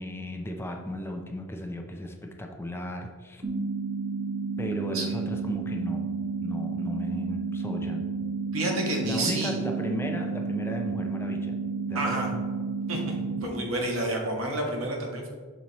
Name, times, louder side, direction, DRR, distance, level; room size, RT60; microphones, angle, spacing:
voice 1, 0.0-3.4 4.6-6.1 6.4-8.1 9.0-11.6 11.9-12.5, equal, 10° left, 3 dB, 0.5 m, -35 dB
sound 1, 3.4-13.4, right 4 dB, 40° right, 0.8 m, -31 dB
voice 2, 8.5-9.6 11.9-12.3 12.9-13.1 13.4-15.3, right 1 dB, 75° right, 0 dB, 1.4 m, -29 dB
7.0 x 6.1 x 3.0 m, 1.5 s
head